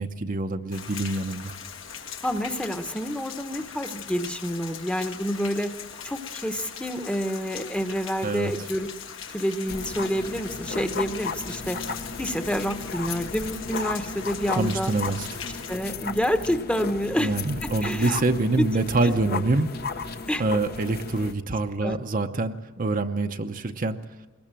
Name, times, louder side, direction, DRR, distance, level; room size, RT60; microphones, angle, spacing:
voice 1, 0.0-1.5 8.2-8.5 14.6-15.3 17.2-19.7 20.4-24.0, right 2 dB, 45° right, 6 dB, 0.9 m, -25 dB
Rain, 0.7-15.8, left 7 dB, 75° left, 1.9 m, -40 dB
voice 2, 2.2-5.7 6.0-8.9 9.3-11.8 12.2-14.9 15.7-17.3 17.6-18.3 18.5-19.4 20.3-20.4 21.8-22.0, equal, 5° left, 7 dB, 1.0 m, -28 dB
sound 1, 9.7-21.3, left 4 dB, 55° left, 1.0 m, -35 dB
22.0 x 19.5 x 7.6 m, 1.2 s
head